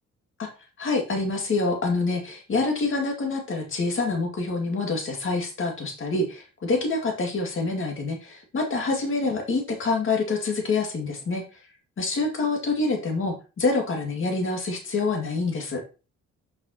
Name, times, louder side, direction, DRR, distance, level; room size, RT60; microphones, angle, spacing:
voice 1, 0.8-11.6 12.0-15.8, left 3 dB, 45° left, 2 dB, 2.1 m, -26 dB
7.5 x 5.5 x 2.9 m, 0.32 s
cardioid pair, 90°, 30 cm